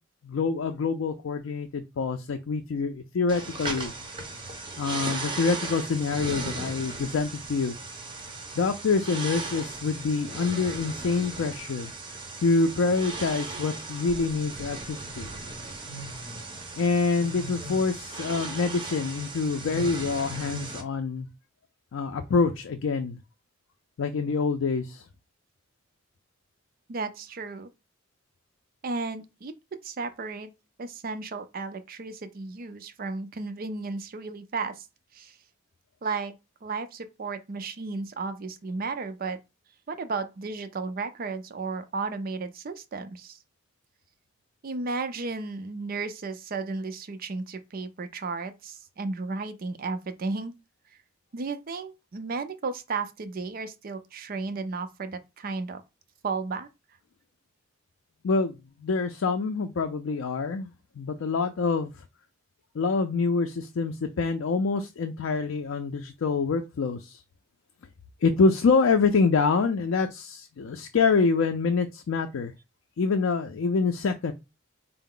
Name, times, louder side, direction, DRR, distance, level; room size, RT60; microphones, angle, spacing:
voice 1, 0.2-3.9 4.8-7.8 8.6-11.9 12.4-15.3 16.7-21.3 21.9-23.2 24.0-25.1 58.2-60.7 61.0-62.0 62.7-67.2 68.2-72.5 73.0-74.3, left 4 dB, 75° left, 0.4 m, -26 dB
sound 1, 3.3-20.8, right 2 dB, 25° right, 0.9 m, -37 dB
voice 2, 26.9-27.7 28.8-30.5 30.8-34.8 35.1-35.3 36.0-36.3 36.6-39.4 39.9-43.4 44.6-50.5 51.3-55.8 56.2-56.7, right 4 dB, 45° right, 0.5 m, -34 dB
4.5 x 2.0 x 3.7 m
head